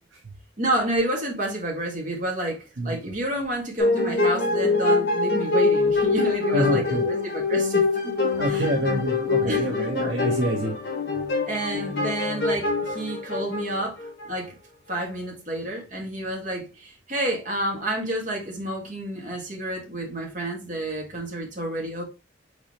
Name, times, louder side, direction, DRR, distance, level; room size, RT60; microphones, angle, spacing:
voice 1, 0.6-8.7 9.5-9.8 11.5-14.0 14.2-14.5 14.9-22.0, right 1 dB, 40° right, 1.6 m, -30 dB
sound 1, 3.8-14.3, left 3 dB, 55° left, 1.6 m, -24 dB
voice 2, 6.5-7.0 8.4-10.8, right 1 dB, 75° right, 0.9 m, -26 dB
4.7 x 4.0 x 2.9 m
head